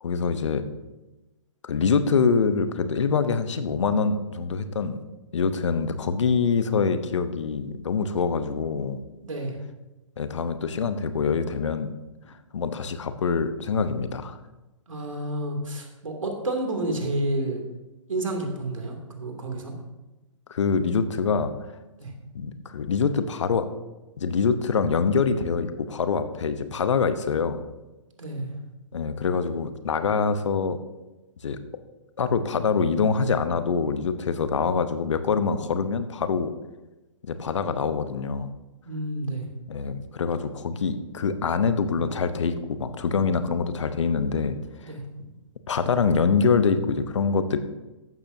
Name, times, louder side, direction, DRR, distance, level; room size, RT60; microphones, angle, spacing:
voice 1, 0.0-0.6 1.6-5.0 5.3-9.0 10.2-11.9 12.5-14.4 20.5-21.5 22.3-23.7 24.2-27.6 28.9-30.8 31.4-31.6 32.2-36.5 37.2-38.5 39.7-44.6 44.8-44.9 45.7-47.6, left 5 dB, 65° left, 11 dB, 1.0 m, -25 dB
voice 2, 9.2-9.5 14.9-17.6 18.1-19.7 22.0-22.1 28.2-28.5 38.9-39.4 44.8-45.0, right 1 dB, 75° right, 3 dB, 2.8 m, -30 dB
15.0 x 11.5 x 2.8 m, 1.1 s
figure-of-eight pair, 125°, 17 cm